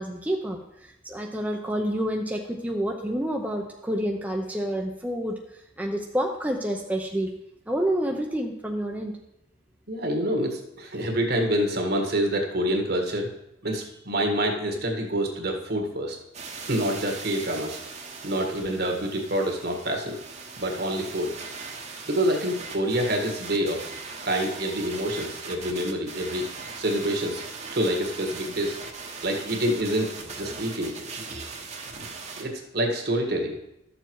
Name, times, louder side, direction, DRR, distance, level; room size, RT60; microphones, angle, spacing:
voice 1, 0.0-5.4 5.8-7.3 7.7-9.1, equal, 10° right, 0 dB, 0.7 m, -28 dB
voice 2, 9.9-13.3 13.6-16.2 16.7-17.8 18.2-20.2 20.6-21.3 22.1-23.8 24.2-26.4 26.8-27.4 27.7-28.8 29.2-30.9 32.3-33.6, equal, 55° right, 3 dB, 1.7 m, -27 dB
sound 1, 16.3-32.4, right 4 dB, 35° right, 1.2 m, -39 dB
12.0 x 7.0 x 4.6 m, 0.85 s
head